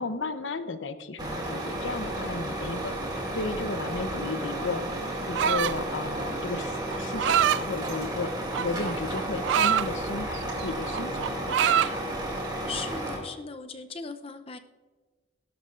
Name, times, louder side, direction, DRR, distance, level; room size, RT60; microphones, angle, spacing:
voice 1, 0.0-4.8 5.3-12.0, left 3 dB, 80° left, 10 dB, 0.8 m, -34 dB
Truck, 1.2-13.2, right 1 dB, 25° right, 2.3 m, -33 dB
sound 1, 5.3-5.9 6.9-7.6 8.5-9.9 10.3-10.6 10.9-11.9, right 9 dB, 70° right, 0.3 m, -24 dB
voice 2, 12.7-14.6, left 4 dB, 30° left, 8 dB, 0.6 m, -38 dB
18.5 x 12.0 x 2.5 m, 1.4 s
head